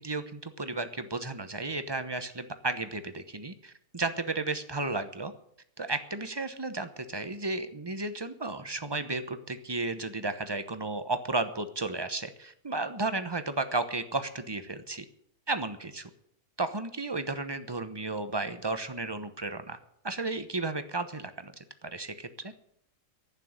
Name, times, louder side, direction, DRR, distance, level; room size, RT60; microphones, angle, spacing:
voice 1, 0.0-5.3 5.8-15.0 15.5-16.1 16.6-19.8 20.0-21.5 21.8-22.5, right 3 dB, 20° right, 10 dB, 0.8 m, -33 dB
11.5 x 9.5 x 9.8 m, 0.71 s
omnidirectional pair, 1.6 m